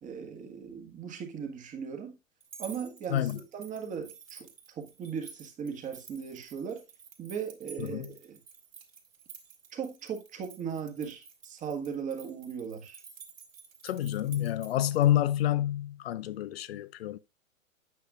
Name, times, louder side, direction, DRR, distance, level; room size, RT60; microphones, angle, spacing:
voice 1, 0.0-2.2 2.6-4.5 4.8-6.8 7.2-8.4 9.7-13.0, right 7 dB, 20° right, 1.4 m, -38 dB
sound 1, 2.4-15.1, right 6 dB, 70° right, 2.3 m, -51 dB
voice 2, 13.8-17.2, left 12 dB, 50° left, 0.6 m, -28 dB
8.7 x 6.5 x 2.4 m
figure-of-eight pair, 110°, 41 cm